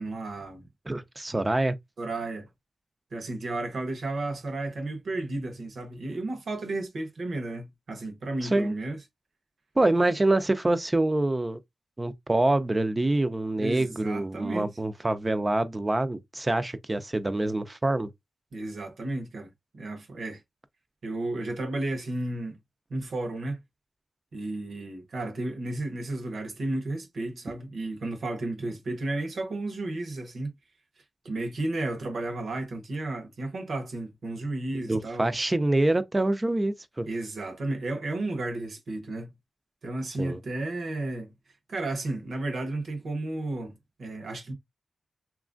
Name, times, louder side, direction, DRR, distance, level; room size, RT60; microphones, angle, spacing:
voice 1, 0.0-0.7 2.0-2.5 3.1-9.0 13.6-14.7 18.5-20.4 21.0-22.6 22.9-23.6 24.3-30.5 31.2-35.3 37.1-39.3 39.8-41.3 41.7-43.7 44.0-44.5, right 2 dB, 80° right, 0.8 m, -33 dB
voice 2, 0.9-1.8 8.4-8.7 9.8-11.6 12.0-18.1 34.9-37.1 40.2-40.4, right 2 dB, 30° right, 0.5 m, -26 dB
2.9 x 2.4 x 2.5 m
cardioid pair, 50°, 0 cm